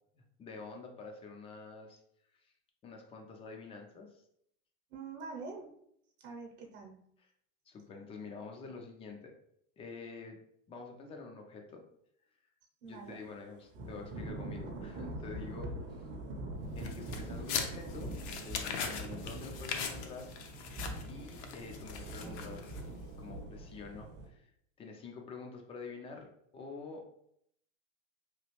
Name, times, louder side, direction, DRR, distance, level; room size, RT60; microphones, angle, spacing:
voice 1, 0.2-2.0 2.4-2.5 2.8-4.2 7.7-9.3 9.8-10.4 10.7-11.8 12.9-16.0 16.7-18.1 18.4-20.3 21.1-24.5 24.8-27.1, left 4 dB, 15° left, 3 dB, 0.3 m, -47 dB
voice 2, 4.9-5.7 6.2-7.0 12.8-13.2, right 4 dB, 55° right, 1 dB, 0.8 m, -45 dB
Thunder / Rain, 13.7-24.3, right 1 dB, 30° right, 0.6 m, -43 dB
sound 1, 16.8-23.0, left 6 dB, 60° left, 0.6 m, -41 dB
3.1 x 2.4 x 3.0 m, 0.72 s
hypercardioid pair, 115°, 38 cm